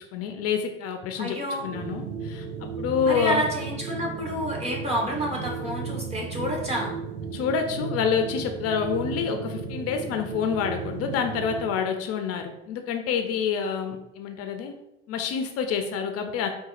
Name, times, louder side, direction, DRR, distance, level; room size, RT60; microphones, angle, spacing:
voice 1, 0.1-3.4 7.3-14.7 15.1-16.5, left 6 dB, 50° left, 5 dB, 0.4 m, -28 dB
voice 2, 1.2-1.6 3.0-6.9, equal, 20° right, -2 dB, 1.2 m, -29 dB
sound 1, 1.5-11.8, right 5 dB, 55° right, 0.6 m, -35 dB
3.9 x 2.3 x 2.4 m, 0.89 s
hypercardioid pair, 75°, 30 cm